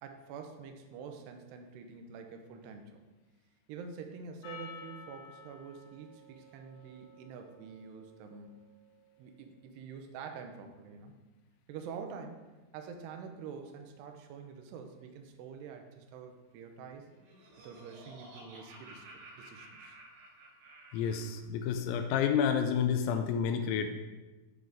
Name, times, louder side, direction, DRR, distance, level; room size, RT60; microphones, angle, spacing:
voice 1, 0.0-3.0 3.7-8.5 9.2-11.1 11.7-12.4 12.7-17.1 17.6-19.0 19.4-20.0, right 6 dB, 90° right, 4 dB, 2.3 m, -46 dB
Percussion, 4.4-9.0, left 3 dB, 65° left, 3.7 m, -52 dB
Laughter, 16.9-21.4, right 2 dB, 60° right, 4.7 m, -53 dB
voice 2, 20.9-23.9, left 7 dB, 85° left, 6 dB, 2.6 m, -29 dB
9.2 x 4.0 x 4.9 m, 1.2 s
omnidirectional pair, 5.8 m